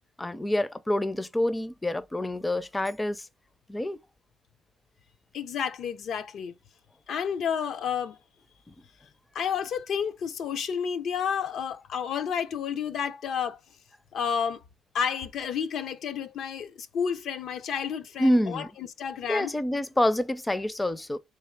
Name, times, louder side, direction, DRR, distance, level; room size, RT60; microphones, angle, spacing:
voice 1, 0.2-3.3 3.7-4.0 8.7-8.8 18.2-18.7 19.3-21.2, left 1 dB, 15° left, 0.4 m, -27 dB
voice 2, 5.3-6.5 7.1-8.2 9.3-13.6 14.1-14.6 14.9-19.5, left 7 dB, 70° left, 0.5 m, -31 dB
3.4 x 3.1 x 4.3 m
cardioid pair, 90°, 0 cm